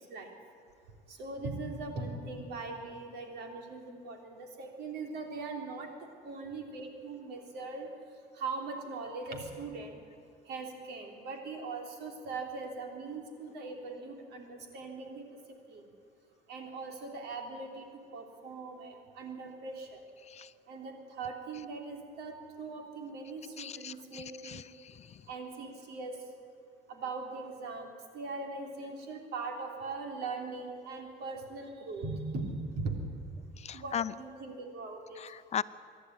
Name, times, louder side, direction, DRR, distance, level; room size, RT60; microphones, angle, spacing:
voice 1, 1.1-7.9 8.3-10.0 10.5-15.2 15.7-15.8 16.5-17.8 18.1-20.0 20.7-24.7 25.3-26.1 26.9-32.5 32.8-33.0 33.7-35.2, right 3 dB, 75° right, 3 dB, 3.6 m, -40 dB
voice 2, 23.6-24.6 33.6-34.1 35.2-35.6, left 8 dB, 40° left, 15 dB, 0.6 m, -37 dB
24.5 x 11.5 x 9.6 m, 2.4 s
cardioid pair, 110°, 17 cm